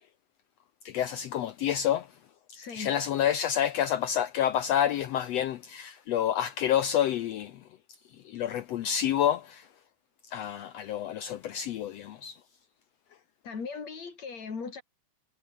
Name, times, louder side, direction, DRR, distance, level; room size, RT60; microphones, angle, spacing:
voice 1, 0.8-2.1 2.5-7.6 8.2-9.7 10.3-12.4, left 10 dB, 70° left, 1.6 m, -28 dB
voice 2, 2.5-2.9 13.4-14.8, left 5 dB, 55° left, 5.5 m, -38 dB
omnidirectional pair, 3.7 m